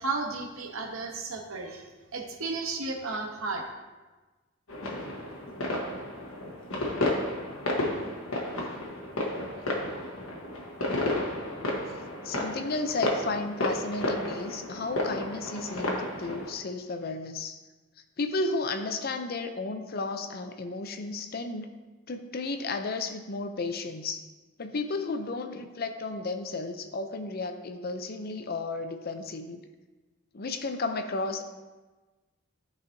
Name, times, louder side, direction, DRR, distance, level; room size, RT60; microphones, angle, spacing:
voice 1, 0.0-3.6, right 3 dB, 75° right, 3 dB, 1.0 m, -34 dB
sound 1, 4.7-16.5, left 1 dB, 80° left, 1.3 m, -32 dB
voice 2, 12.2-17.6 18.2-21.7 22.1-24.3 24.6-29.7 30.3-31.4, left 3 dB, 45° left, 7 dB, 0.5 m, -33 dB
13.0 x 4.8 x 2.7 m, 1.2 s
head